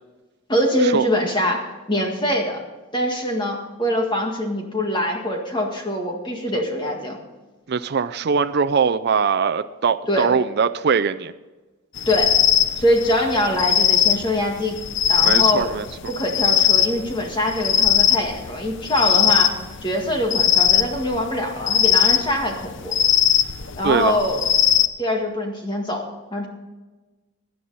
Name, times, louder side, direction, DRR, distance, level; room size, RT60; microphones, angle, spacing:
voice 1, 0.5-2.6 2.9-7.2 10.1-10.3 12.1-12.4 12.8-14.8 15.1-15.7 16.1-22.9 23.8-24.4 25.0-26.0 26.3-26.5, left 1 dB, 20° left, 1 dB, 1.8 m, -23 dB
voice 2, 7.7-11.3 15.2-15.9 23.8-24.2, right 5 dB, 50° right, 11 dB, 0.4 m, -21 dB
sound 1, 12.0-24.9, left 10 dB, 55° left, 0.8 m, -20 dB
17.0 x 10.0 x 4.1 m, 1.2 s
head